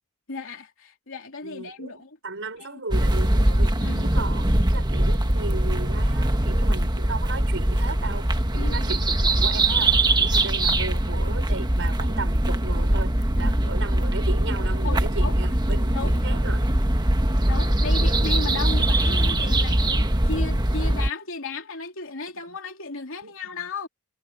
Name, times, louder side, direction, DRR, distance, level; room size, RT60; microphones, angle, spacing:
voice 1, 0.3-2.1 3.8-4.1 8.5-8.9 14.8-15.4 15.9-16.2 17.5-23.9, left 3 dB, 65° left, 3.4 m, -35 dB
voice 2, 1.4-16.7 22.5-22.6 23.2-23.7, right 3 dB, 65° right, 6.1 m, -36 dB
sound 1, 2.9-21.1, right 1 dB, 20° right, 1.4 m, -22 dB
head